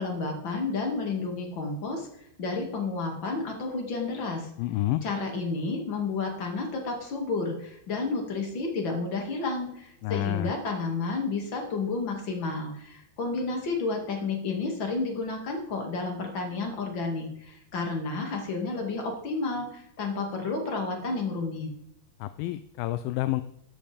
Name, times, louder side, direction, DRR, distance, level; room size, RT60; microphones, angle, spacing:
voice 1, 0.0-4.5 5.0-21.7, left 3 dB, 35° left, 2 dB, 2.4 m, -31 dB
voice 2, 4.6-5.0 10.0-10.5 22.2-23.4, left 15 dB, 80° left, 12 dB, 2.3 m, -29 dB
13.0 x 11.0 x 3.5 m, 0.77 s
omnidirectional pair, 4.4 m